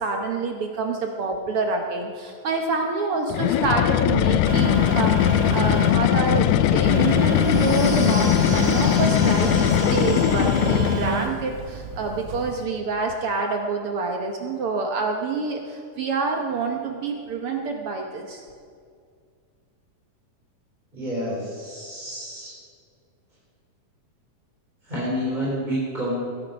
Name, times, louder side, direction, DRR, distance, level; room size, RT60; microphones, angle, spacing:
voice 1, 0.0-18.4, right 4 dB, 60° right, 3 dB, 1.6 m, -27 dB
sound 1, 3.3-11.3, left 13 dB, 90° left, 1.5 m, -20 dB
Telephone, 4.4-12.7, right 9 dB, 90° right, 1.1 m, -30 dB
sound 2, 7.3-11.3, left 3 dB, 45° left, 0.8 m, -37 dB
voice 2, 20.9-22.5 24.8-26.1, equal, 15° right, -7 dB, 3.4 m, -29 dB
20.5 x 10.5 x 5.3 m, 2.2 s
omnidirectional pair, 3.6 m